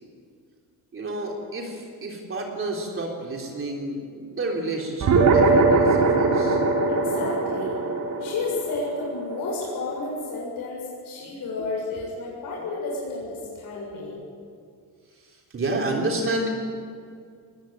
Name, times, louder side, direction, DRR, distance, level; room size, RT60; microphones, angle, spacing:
voice 1, 0.9-6.6 11.2-11.3 12.3-12.4 15.1-16.5, right 2 dB, 35° right, 0 dB, 3.6 m, -30 dB
sound 1, 5.0-9.8, right 3 dB, 55° right, 3.7 m, -21 dB
voice 2, 6.9-7.8 8.2-14.2, left 3 dB, 65° left, -3 dB, 7.3 m, -31 dB
21.5 x 20.0 x 9.1 m, 2.2 s
cardioid pair, 145°, 36 cm